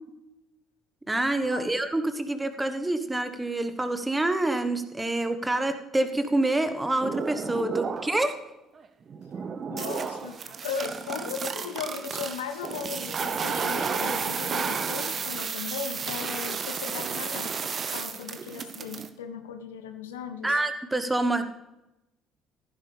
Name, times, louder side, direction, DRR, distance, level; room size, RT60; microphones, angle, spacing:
voice 1, 1.1-8.3 20.4-21.4, right 2 dB, 10° right, 9 dB, 1.3 m, -27 dB
sound 1, 7.0-8.3 8.8-19.1, right 6 dB, 35° right, 0.9 m, -32 dB
voice 2, 7.5-7.9 9.7-20.6, left 6 dB, 70° left, 8 dB, 0.8 m, -37 dB
15.0 x 11.0 x 3.4 m, 0.92 s
figure-of-eight pair, 50°, 0 cm